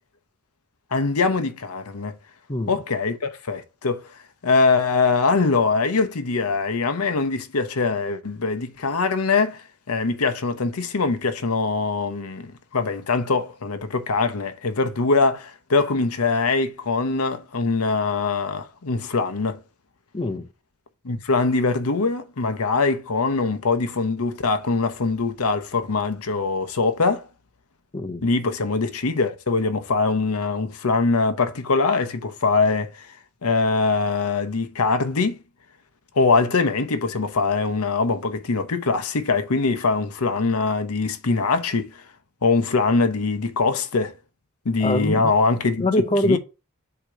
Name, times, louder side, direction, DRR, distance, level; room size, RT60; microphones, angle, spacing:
voice 1, 0.9-2.1 2.7-4.0 4.4-19.6 21.0-27.2 28.2-33.1 33.4-35.4 36.2-42.0 42.4-44.1 44.6-45.9 46.2-46.4, left 4 dB, 80° left, 0.8 m, -22 dB
voice 2, 2.5-2.8 20.1-20.5 27.9-28.2 44.8-45.3 45.8-46.4, left 1 dB, 25° left, 0.7 m, -23 dB
7.9 x 3.0 x 4.8 m
head